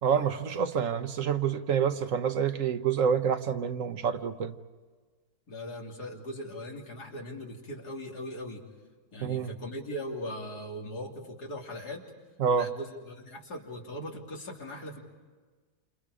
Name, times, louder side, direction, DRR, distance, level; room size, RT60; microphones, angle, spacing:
voice 1, 0.0-4.5 9.2-9.5 12.4-12.7, right 7 dB, 60° right, 9 dB, 1.3 m, -27 dB
voice 2, 5.5-8.6 9.1-12.0 12.5-15.0, left 1 dB, 85° left, 0 dB, 3.7 m, -39 dB
29.0 x 28.5 x 5.0 m, 1.4 s
omnidirectional pair, 1.6 m